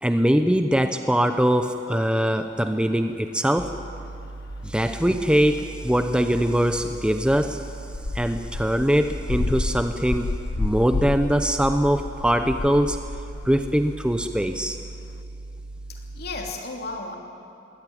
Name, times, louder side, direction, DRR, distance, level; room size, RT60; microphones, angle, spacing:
voice 1, 0.0-3.7 4.6-7.7 8.1-10.3 10.6-13.0 13.4-14.8, equal, 5° right, 7 dB, 0.7 m, -22 dB
sound 1, 1.6-1.7 5.2-5.3 6.4-7.0 7.3-13.8 14.2-14.3 14.9-15.0, left 2 dB, 90° left, 0.7 m, -31 dB
sound 2, 3.6-16.5, right 2 dB, 55° right, 0.8 m, -38 dB
voice 2, 15.9-17.2, left 3 dB, 60° left, 1 dB, 3.3 m, -34 dB
22.0 x 16.5 x 10.0 m, 2.6 s
head